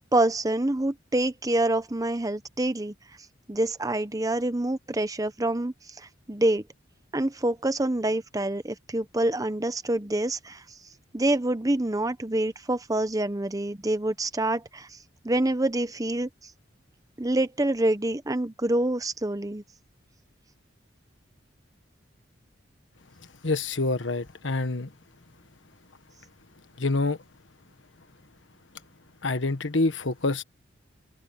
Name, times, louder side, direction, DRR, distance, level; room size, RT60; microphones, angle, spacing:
voice 1, 0.1-2.9 3.5-6.6 7.1-10.6 11.1-15.0 15.2-16.3 17.2-19.6, right 1 dB, 20° right, 0.9 m, -26 dB
voice 2, 23.4-24.9 26.8-27.2 29.2-30.4, left 3 dB, 80° left, 1.4 m, -26 dB
head